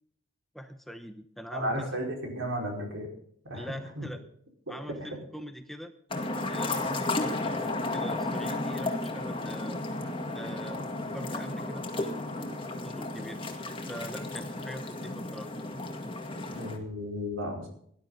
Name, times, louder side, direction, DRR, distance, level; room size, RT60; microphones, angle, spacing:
voice 1, 0.5-1.9 3.5-4.2 4.7-5.9 6.5-9.8 10.3-10.8 11.1-12.3 12.8-13.6 13.9-15.5, equal, ahead, 8 dB, 0.8 m, -43 dB
voice 2, 1.5-3.1 3.4-4.1 5.0-5.1 16.5-17.7, equal, 85° right, 1 dB, 4.8 m, -34 dB
sound 1, 6.1-16.8, left 2 dB, 25° left, 2.0 m, -33 dB
18.5 x 11.5 x 3.9 m, 0.65 s
head